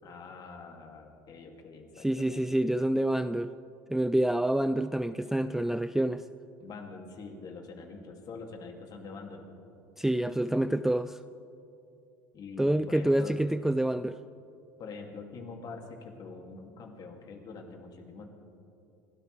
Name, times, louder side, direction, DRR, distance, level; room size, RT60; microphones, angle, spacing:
voice 1, 0.0-2.4 6.6-9.5 12.3-13.4 14.8-18.3, left 4 dB, 45° left, 2 dB, 2.7 m, -45 dB
voice 2, 2.0-3.5 3.9-6.2 10.0-11.2 12.6-14.2, right 1 dB, 5° right, 12 dB, 0.3 m, -27 dB
29.5 x 13.0 x 3.4 m, 2.7 s
hypercardioid pair, 80°, 9 cm